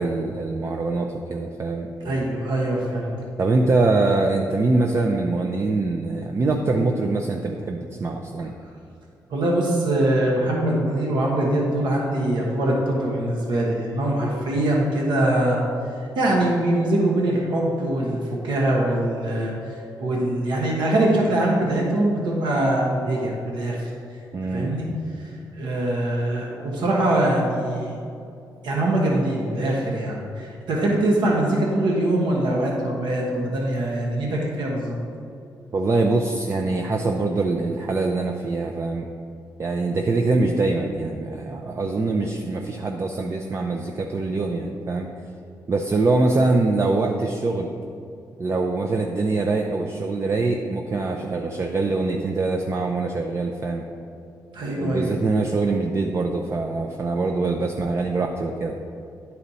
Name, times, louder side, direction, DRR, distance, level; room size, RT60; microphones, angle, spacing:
voice 1, 0.0-1.9 3.4-8.5 24.3-24.7 35.7-39.1 39.6-45.1 45.7-47.7 48.4-53.9 54.7-58.8, right 3 dB, 35° right, 3 dB, 0.5 m, -23 dB
voice 2, 2.0-3.1 9.3-15.6 16.2-19.5 20.0-23.9 24.5-24.9 25.2-27.9 28.6-35.0 54.5-55.1, right 1 dB, 80° right, -2 dB, 1.1 m, -23 dB
10.0 x 4.2 x 4.1 m, 2.5 s
cardioid pair, 90°, 8 cm